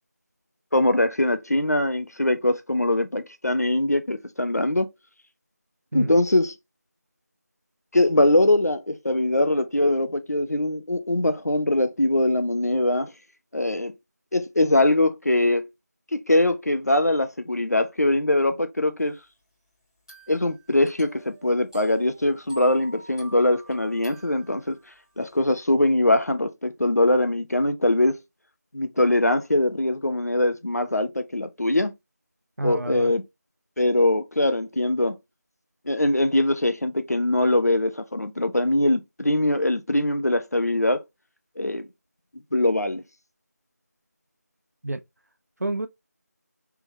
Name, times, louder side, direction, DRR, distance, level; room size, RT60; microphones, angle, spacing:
voice 1, 0.7-4.9 5.9-6.5 7.9-13.1 13.5-13.9 14.3-15.7 16.1-19.2 20.3-24.8 25.2-28.2 28.7-31.9 32.6-33.2 33.8-35.2 35.9-41.0 41.6-41.9 42.5-43.0, left 1 dB, 65° left, 0.7 m, -22 dB
sound 1, 20.1-25.0, right 2 dB, 15° left, 1.8 m, -47 dB
voice 2, 32.6-33.1 44.8-45.0 45.6-45.9, right 2 dB, 65° right, 0.4 m, -28 dB
3.4 x 3.4 x 2.7 m
figure-of-eight pair, 170°, 9 cm